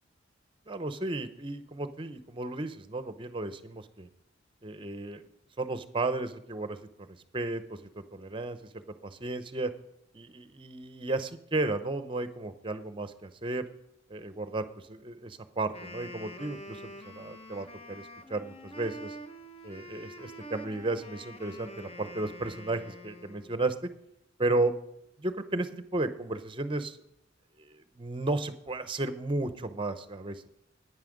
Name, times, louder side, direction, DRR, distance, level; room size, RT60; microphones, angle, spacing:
voice 1, 0.7-4.1 4.6-5.2 5.6-9.7 10.1-13.6 14.1-19.2 19.6-23.7 24.4-24.7 25.2-27.0 27.6-30.5, right 2 dB, 25° right, 11 dB, 0.7 m, -34 dB
Wind instrument woodwind instrument, 15.7-23.6, equal, 30° left, 0.9 m, -46 dB
9.6 x 9.4 x 5.2 m, 0.78 s
head